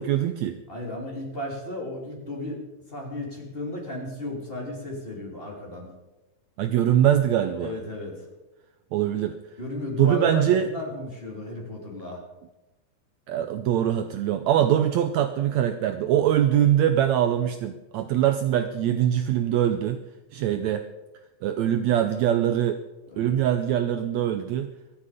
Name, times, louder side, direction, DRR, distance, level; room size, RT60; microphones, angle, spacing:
voice 1, 0.0-0.6 6.6-7.7 8.9-9.4 10.0-10.7 13.3-20.0 20.3-20.9 21.4-22.8 23.2-24.7, right 10 dB, 90° right, 9 dB, 1.5 m, -23 dB
voice 2, 0.7-5.9 7.6-8.3 9.6-12.2 23.1-23.3, left 1 dB, 15° left, -1 dB, 3.0 m, -34 dB
23.0 x 8.4 x 5.0 m, 1.0 s
omnidirectional pair, 4.0 m